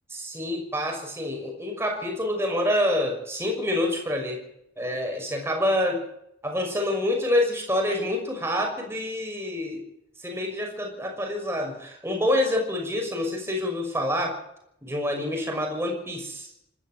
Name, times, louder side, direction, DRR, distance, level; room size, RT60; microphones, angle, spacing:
voice 1, 0.1-4.4 4.8-6.0 6.4-9.9 10.2-14.4 14.8-16.5, left 1 dB, 15° right, 2 dB, 6.1 m, -27 dB
26.0 x 13.0 x 7.6 m, 0.76 s
head